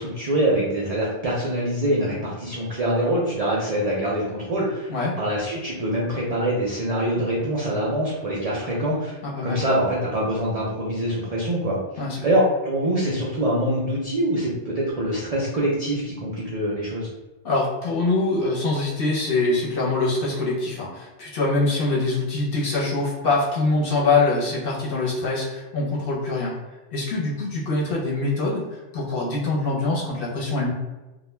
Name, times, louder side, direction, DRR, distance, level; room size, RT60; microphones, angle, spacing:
voice 1, 0.0-4.9 5.2-17.1, right 1 dB, 50° right, -5 dB, 0.4 m, -24 dB
voice 2, 9.2-9.6 12.0-12.2 17.4-26.6 26.9-30.7, left 3 dB, 55° left, -4 dB, 0.9 m, -24 dB
2.3 x 2.2 x 3.2 m, 1.1 s
omnidirectional pair, 1.3 m